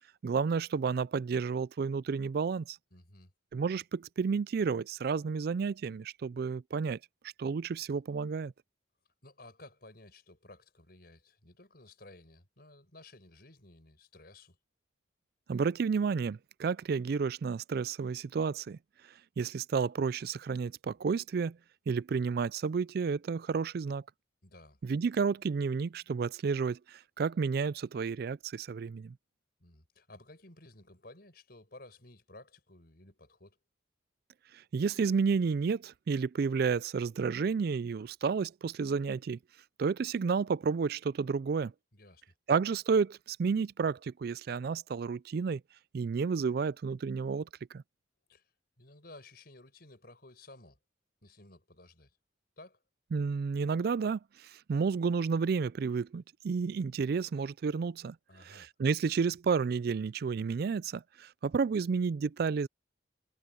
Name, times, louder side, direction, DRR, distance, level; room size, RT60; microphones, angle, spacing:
voice 1, 0.2-2.8 3.5-7.0 7.4-8.5 15.5-18.8 19.4-21.6 21.9-24.0 24.8-29.1 34.7-39.4 39.8-41.7 42.5-45.6 45.9-47.5 47.7-47.8 53.1-54.2 54.7-58.2 58.5-62.7, right 5 dB, 55° right, 0.3 m, -31 dB
voice 2, 2.9-3.3 9.2-14.6 24.4-24.8 29.6-33.6 41.9-42.2 48.3-48.5 48.8-50.8 51.2-52.2 52.6-52.8 58.3-58.7, left 2 dB, 50° left, 5.7 m, -55 dB
head